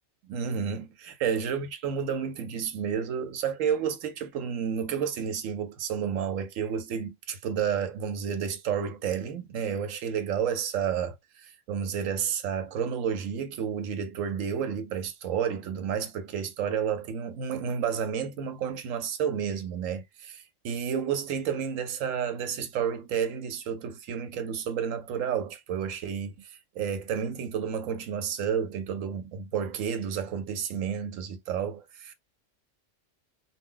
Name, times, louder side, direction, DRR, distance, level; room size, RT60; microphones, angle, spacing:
voice 1, 0.3-11.2 11.4-32.1, right 7 dB, 90° right, 1.0 m, -31 dB
2.3 x 2.1 x 3.7 m
omnidirectional pair, 1.3 m